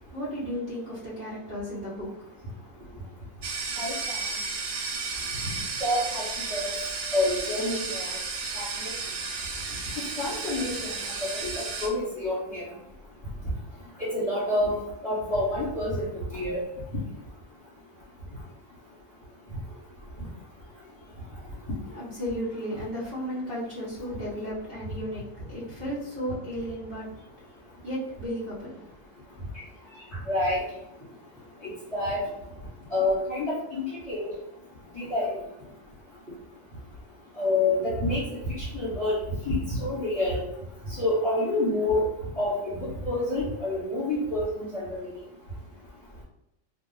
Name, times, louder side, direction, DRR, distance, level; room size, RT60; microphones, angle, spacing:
voice 1, 0.0-3.3 21.9-30.3 31.0-31.7 32.7-32.9 36.3-36.4 40.9-41.0, equal, 45° right, -8 dB, 1.2 m, -36 dB
sound 1, 3.4-11.9, right 4 dB, 65° right, 0.5 m, -33 dB
voice 2, 5.8-6.2 6.5-6.7 7.1-8.1 8.5-8.9 10.2-10.9 11.3-12.6 14.0-14.8 15.0-16.6 30.3-30.6 31.9-32.2 32.9-34.3 34.9-35.3 37.4-40.4 41.0-42.1 42.3-44.5 44.7-45.0, left 2 dB, 25° left, -12 dB, 1.4 m, -27 dB
2.6 x 2.4 x 3.9 m, 0.86 s
omnidirectional pair, 1.4 m